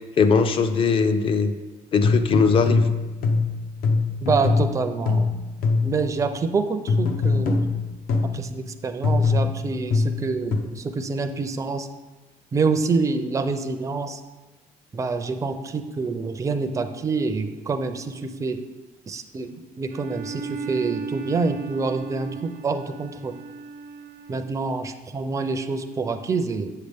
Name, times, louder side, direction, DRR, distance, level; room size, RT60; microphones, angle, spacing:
voice 1, 0.2-1.5 1.9-2.9, left 5 dB, 35° left, 9 dB, 0.5 m, -20 dB
sound 1, 2.0-6.1 6.9-8.5 9.0-10.6, left 4 dB, 70° left, 0.8 m, -22 dB
voice 2, 4.2-5.3 5.8-7.7 8.3-11.9 12.5-14.2 14.9-18.6 19.1-23.3 24.3-26.7, right 4 dB, 20° right, 7 dB, 0.4 m, -27 dB
Bowed string instrument, 19.9-24.6, right 5 dB, 70° right, 0.7 m, -36 dB
8.0 x 6.6 x 3.5 m, 1.2 s
cardioid pair, 155°, 15 cm